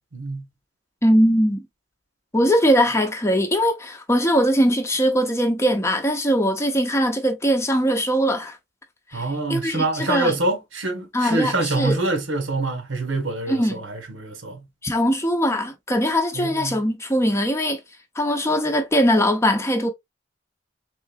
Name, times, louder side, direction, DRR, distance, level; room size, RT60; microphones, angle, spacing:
voice 1, 0.1-0.4 9.1-14.6 16.3-16.8, right 2 dB, 80° right, 1.2 m, -25 dB
voice 2, 1.0-1.7 2.3-8.6 9.1-9.2 9.5-10.3 11.1-12.0 13.5-13.8 14.8-17.8 18.2-19.9, equal, 15° left, 0.6 m, -21 dB
3.8 x 3.7 x 2.3 m
head